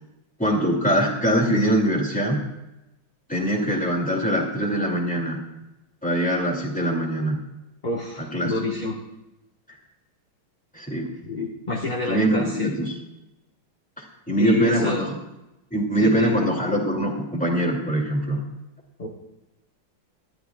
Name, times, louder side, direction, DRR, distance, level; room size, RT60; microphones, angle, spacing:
voice 1, 0.4-2.4 3.3-5.4 6.0-7.4 8.2-8.5 10.7-11.1 12.1-12.9 14.0-15.1 15.7-18.4, right 1 dB, 5° left, 0 dB, 2.2 m, -23 dB
voice 2, 7.8-9.0 11.2-12.9 14.4-15.1 16.0-16.5 19.0-19.1, left 3 dB, 25° left, -2 dB, 1.2 m, -28 dB
19.5 x 13.0 x 2.3 m, 0.95 s
omnidirectional pair, 2.3 m